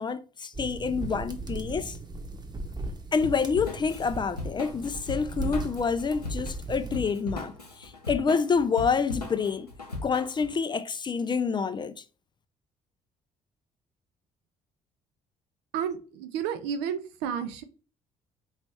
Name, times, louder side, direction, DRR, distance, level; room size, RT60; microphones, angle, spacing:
voice 1, 0.0-2.0 3.1-9.7 10.0-11.9, left 5 dB, 25° left, 0.4 m, -28 dB
sound 1, 0.5-6.9, right 3 dB, 20° right, 0.9 m, -37 dB
Drum kit / Drum, 3.2-10.5, left 2 dB, 90° left, 0.6 m, -38 dB
voice 2, 15.7-17.6, right 8 dB, 60° right, 0.6 m, -31 dB
4.4 x 3.0 x 3.3 m
figure-of-eight pair, 45°, 19 cm